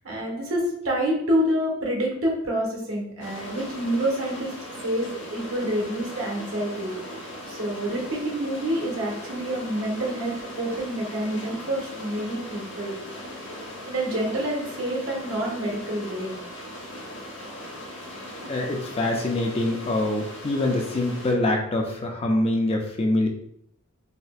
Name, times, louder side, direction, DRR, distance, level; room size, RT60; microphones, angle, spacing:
voice 1, 0.0-4.5 4.8-6.9 7.5-12.9 13.8-16.3, right 1 dB, 70° right, -2 dB, 1.1 m, -27 dB
sound 1, 3.2-21.3, left 1 dB, 60° left, 1.1 m, -39 dB
voice 2, 18.5-23.3, left 1 dB, 25° left, 2 dB, 0.3 m, -24 dB
4.1 x 2.1 x 2.3 m, 0.71 s
head